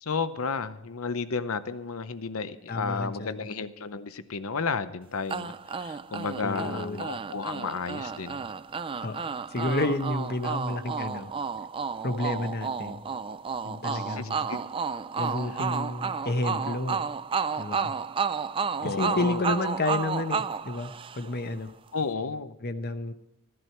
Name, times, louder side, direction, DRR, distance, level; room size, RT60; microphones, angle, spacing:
voice 1, 0.0-8.5 13.9-14.6 18.8-19.5 21.9-22.5, left 4 dB, 75° left, 12 dB, 0.8 m, -33 dB
voice 2, 2.7-3.5 6.4-7.0 9.0-11.3 12.0-13.0 13.6-14.5 15.2-17.0 17.6-17.9 18.8-20.9 21.2-21.7 22.6-23.1, left 2 dB, 45° left, 9 dB, 0.9 m, -30 dB
sound 1, 5.3-21.5, right 5 dB, 25° right, 0.3 m, -32 dB
15.0 x 11.0 x 4.5 m, 0.90 s
head